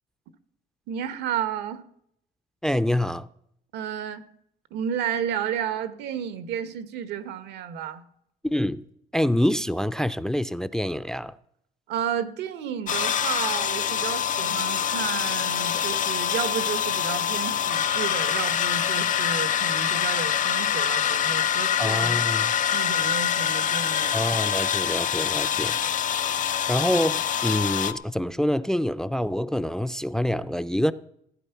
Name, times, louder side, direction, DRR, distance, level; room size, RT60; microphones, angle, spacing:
voice 1, 0.9-1.8 3.7-4.2 4.7-8.0 11.9-22.2 22.5-24.2, right 8 dB, 80° right, 1.2 m, -32 dB
voice 2, 2.6-3.3 8.4-8.8 9.1-11.3 21.8-22.5 24.1-25.8 26.7-30.9, left 1 dB, 5° left, 0.4 m, -26 dB
sound 1, 12.9-27.9, left 9 dB, 50° left, 0.8 m, -25 dB
15.5 x 9.0 x 5.8 m
cardioid pair, 110°, 17 cm